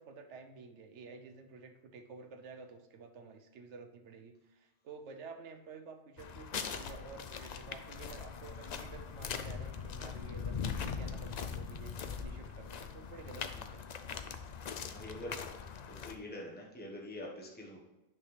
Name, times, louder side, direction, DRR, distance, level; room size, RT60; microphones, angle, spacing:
voice 1, 0.0-13.8, right 4 dB, 75° right, 6 dB, 1.1 m, -51 dB
Footsteps on Gravel Beside Railroad Track, 6.2-16.2, left 6 dB, 50° left, 0.5 m, -41 dB
voice 2, 14.9-15.4 15.9-17.8, left 1 dB, 10° left, -1 dB, 1.2 m, -45 dB
9.2 x 6.0 x 3.3 m, 1.0 s
omnidirectional pair, 1.2 m